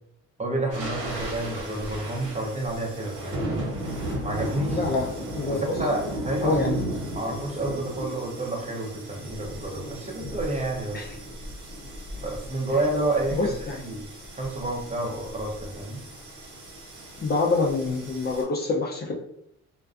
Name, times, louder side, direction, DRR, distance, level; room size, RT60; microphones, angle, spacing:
voice 1, 0.4-3.6 4.2-4.8 5.5-6.7 7.1-11.0 12.2-13.5 13.8-16.0, right 2 dB, 25° right, 0 dB, 0.6 m, -30 dB
sound 1, 0.7-18.4, right 1 dB, 75° right, 1.1 m, -35 dB
voice 2, 4.7-5.8 6.4-6.9 10.9-11.1 13.3-13.8 17.2-19.1, left 3 dB, 35° left, -1 dB, 0.5 m, -26 dB
2.5 x 2.2 x 2.4 m, 0.71 s
cardioid pair, 90°, 30 cm